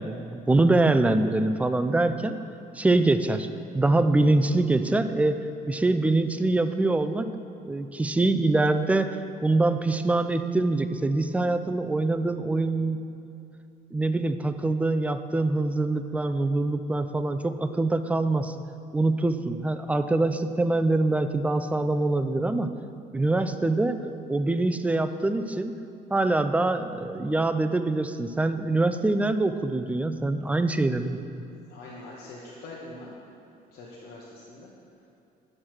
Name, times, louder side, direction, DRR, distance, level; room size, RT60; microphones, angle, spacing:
voice 1, 0.0-2.4 2.7-3.5 3.7-5.4 5.7-7.3 7.6-9.2 9.4-13.0 13.9-18.5 18.9-22.7 23.1-24.0 24.3-25.7 26.1-31.2, right 2 dB, 10° right, 9 dB, 0.4 m, -24 dB
voice 2, 31.7-33.1 33.7-34.7, left 2 dB, 70° left, -5 dB, 1.3 m, -43 dB
11.0 x 6.6 x 4.5 m, 2.7 s
cardioid pair, 110°, 17 cm